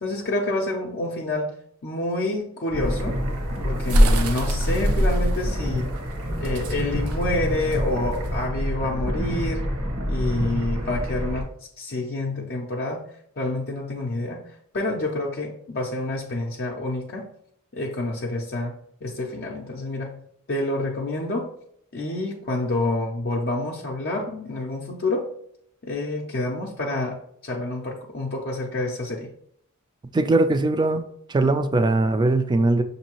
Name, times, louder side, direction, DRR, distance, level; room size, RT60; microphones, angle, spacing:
voice 1, 0.0-1.5 1.8-3.2 3.6-5.9 6.4-9.7 10.1-11.5 11.8-13.0 13.4-17.3 17.7-18.7 19.0-20.2 20.5-21.5 21.9-25.3 25.8-29.3, left 2 dB, 50° left, -1 dB, 0.5 m, -28 dB
sound 1, 2.7-11.4, equal, 65° right, 1.0 m, -28 dB
sound 2, 2.9-8.4, equal, 85° right, 0.6 m, -24 dB
voice 2, 30.1-31.0 31.3-32.8, right 2 dB, 20° right, 10 dB, 0.3 m, -20 dB
6.2 x 2.7 x 2.9 m, 0.70 s
head